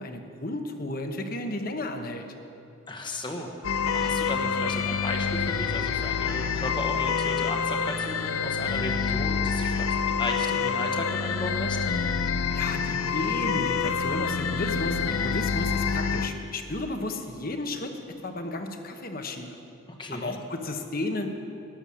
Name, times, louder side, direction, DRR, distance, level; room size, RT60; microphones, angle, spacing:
voice 1, 0.0-2.2 12.5-19.5 20.1-21.3, left 2 dB, 45° left, 5 dB, 1.1 m, -33 dB
voice 2, 2.9-3.5 3.9-11.8 20.0-20.3, left 2 dB, 20° left, 2 dB, 1.1 m, -35 dB
sound 1, 3.6-16.3, left 6 dB, 90° left, 0.7 m, -27 dB
12.5 x 8.2 x 9.9 m, 2.7 s
head